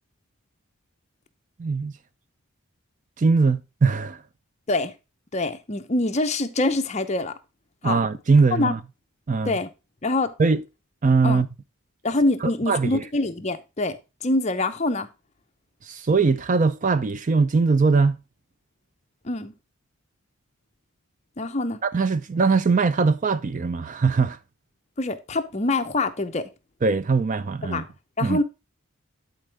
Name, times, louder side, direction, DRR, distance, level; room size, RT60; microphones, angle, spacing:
voice 1, 1.6-1.9 3.2-4.2 7.8-8.8 9.3-9.6 10.4-10.6 11.0-11.5 12.4-13.0 15.8-18.2 21.9-24.4 26.8-27.8 28.2-28.4, right 4 dB, 35° right, 0.4 m, -21 dB
voice 2, 5.3-7.3 7.8-8.0 8.5-8.8 9.5-9.7 10.0-10.4 11.2-11.4 12.0-15.1 19.2-19.5 21.4-21.8 25.0-26.5 27.6-27.9 28.2-28.4, left 2 dB, 30° left, 0.6 m, -25 dB
11.0 x 4.5 x 3.3 m
head